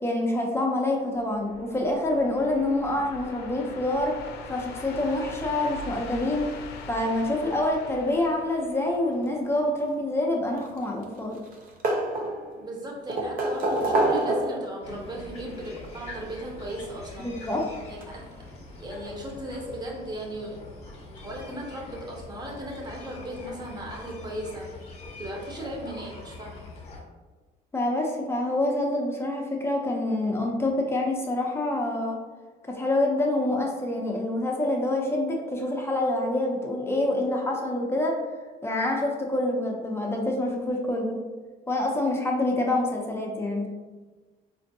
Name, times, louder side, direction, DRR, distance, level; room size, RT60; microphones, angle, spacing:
voice 1, 0.0-4.1 4.5-6.5 6.9-11.4 17.2-17.6 27.7-32.2 32.7-38.1 38.6-41.2 41.7-43.7, left 1 dB, 15° left, -1 dB, 0.5 m, -26 dB
sound 1, 1.2-9.6, left 3 dB, 75° left, 0.5 m, -42 dB
sound 2, 10.5-11.2 11.5-12.6 13.1-14.8 16.0-16.1 17.6-17.7 18.0-18.1, right 2 dB, 55° right, 0.6 m, -26 dB
voice 2, 12.6-17.5 17.9-20.7 21.2-24.7 25.2-26.7, right 1 dB, 25° right, -1 dB, 0.9 m, -37 dB
sound 3, 14.8-27.0, left 2 dB, 40° left, 0.9 m, -44 dB
4.3 x 2.6 x 2.6 m, 1.3 s
cardioid pair, 110°, 17 cm